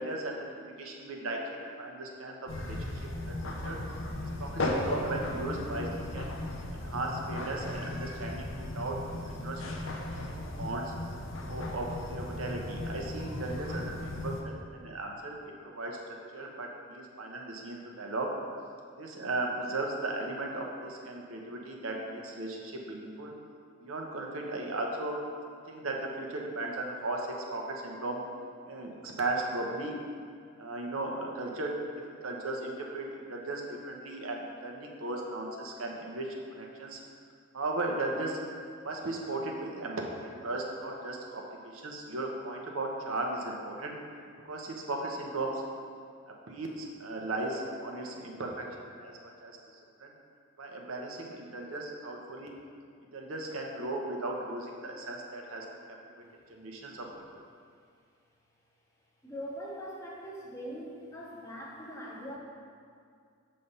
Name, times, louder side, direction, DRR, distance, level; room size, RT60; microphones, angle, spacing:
voice 1, 0.0-2.8 3.4-3.8 4.2-6.3 6.7-8.9 9.3-9.6 10.3-10.8 11.5-14.3 14.7-15.4 15.6-16.0 16.3-18.3 19.0-23.3 23.8-25.1 25.7-28.2 28.7-29.9 30.6-31.7 32.1-33.0 33.3-36.3 36.5-37.0 37.5-38.4 38.8-41.4 41.7-43.9 44.4-45.6 46.5-48.6 49.0-49.1 49.4-49.6 50.0-50.1 50.6-52.5 53.1-55.6 56.5-56.9, right 2 dB, 90° right, 0 dB, 0.8 m, -36 dB
sound 1, 2.5-14.4, left 1 dB, 70° left, 0.7 m, -36 dB
voice 2, 59.2-62.4, equal, 15° left, -4 dB, 0.8 m, -42 dB
6.6 x 3.3 x 5.5 m, 2.2 s
head